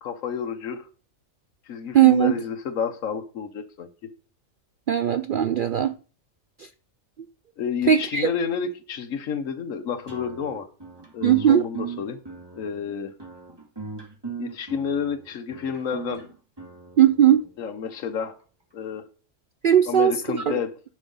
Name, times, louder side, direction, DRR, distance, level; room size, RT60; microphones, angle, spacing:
voice 1, 0.0-0.9 1.7-3.9 7.6-10.7 11.1-12.2 12.5-13.1 14.4-16.2 17.6-18.4 18.7-19.0 19.9-20.7, left 7 dB, 85° left, 1.3 m, -30 dB
voice 2, 1.9-2.3 4.9-5.9 7.9-8.3 11.2-11.6 17.0-17.4 19.6-20.5, right 10 dB, 60° right, 0.5 m, -18 dB
sound 1, 10.1-17.5, right 4 dB, 20° right, 2.3 m, -39 dB
10.5 x 5.5 x 5.4 m
omnidirectional pair, 1.4 m